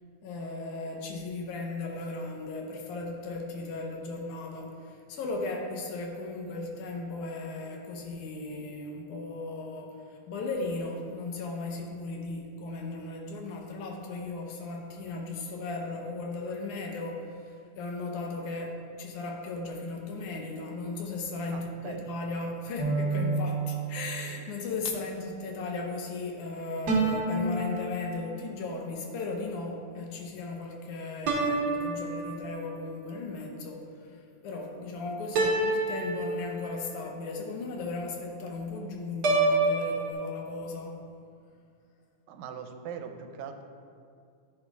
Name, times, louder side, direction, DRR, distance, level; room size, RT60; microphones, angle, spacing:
voice 1, 0.2-41.0, left 3 dB, 85° left, 1 dB, 2.4 m, -36 dB
voice 2, 21.5-22.1 42.3-43.6, right 7 dB, 85° right, 6 dB, 1.9 m, -41 dB
sound 1, 22.8-24.5 26.9-28.6 31.3-32.8 35.4-37.0 39.2-40.1, right 3 dB, 55° right, 1.2 m, -28 dB
9.8 x 9.3 x 2.4 m, 2.3 s
omnidirectional pair, 3.4 m